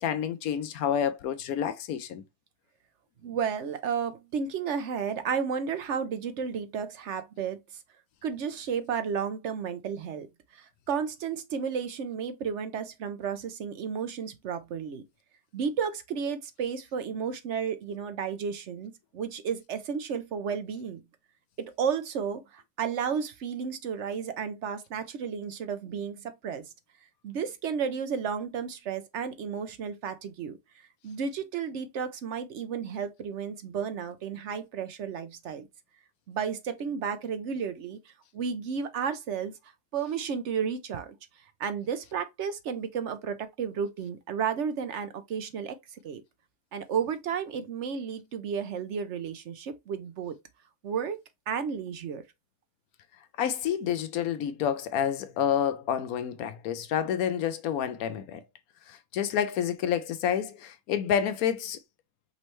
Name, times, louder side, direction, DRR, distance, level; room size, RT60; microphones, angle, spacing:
voice 1, 0.0-2.2 53.4-58.4 58.9-61.8, left 9 dB, 85° left, 1.1 m, -29 dB
voice 2, 3.2-7.8 8.2-15.0 15.5-21.0 21.6-26.7 27.2-35.7 36.3-46.2 46.7-50.3 50.8-51.2 51.5-52.2, right 6 dB, 60° right, 0.9 m, -33 dB
5.3 x 3.1 x 3.0 m
omnidirectional pair, 1.5 m